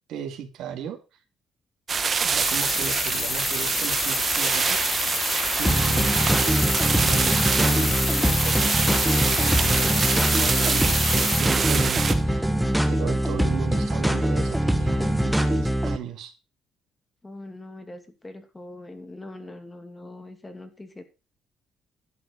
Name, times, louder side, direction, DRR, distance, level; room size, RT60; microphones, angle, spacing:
voice 1, 0.1-1.0 2.2-4.8 5.6-6.1 6.4-12.5 12.9-16.3, right 8 dB, 80° right, 5 dB, 2.6 m, -36 dB
sound 1, 1.9-12.1, right 5 dB, 35° right, 1.4 m, -25 dB
sound 2, 2.4-11.4, left 6 dB, 45° left, 1.3 m, -29 dB
sound 3, 5.6-16.0, equal, ahead, 1.4 m, -23 dB
voice 2, 12.6-13.5 17.2-21.0, left 2 dB, 15° left, 7 dB, 2.5 m, -42 dB
11.5 x 8.0 x 5.2 m, 0.31 s
cardioid pair, 115°, 0 cm